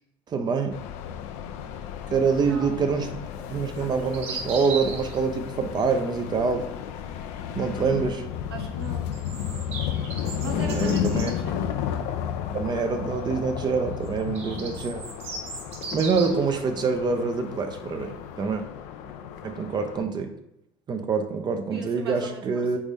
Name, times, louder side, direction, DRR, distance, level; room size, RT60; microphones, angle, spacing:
voice 1, 0.3-0.8 2.1-3.1 3.5-6.7 7.5-8.3 10.6-11.3 12.5-15.0 15.9-18.6 19.4-20.3 20.9-22.8, right 5 dB, 35° right, 6 dB, 0.6 m, -26 dB
sound 1, 0.7-20.0, left 9 dB, 60° left, 0.5 m, -33 dB
voice 2, 2.4-2.7 8.5-9.2 10.4-11.6 14.3-14.9 19.0-19.2 21.7-22.8, right 3 dB, 90° right, 2 dB, 0.8 m, -39 dB
sound 2, 3.8-5.2 8.8-11.3 14.0-16.5, right 4 dB, 60° right, 1.1 m, -37 dB
3.9 x 3.5 x 3.4 m, 0.84 s
hypercardioid pair, 70°, 13 cm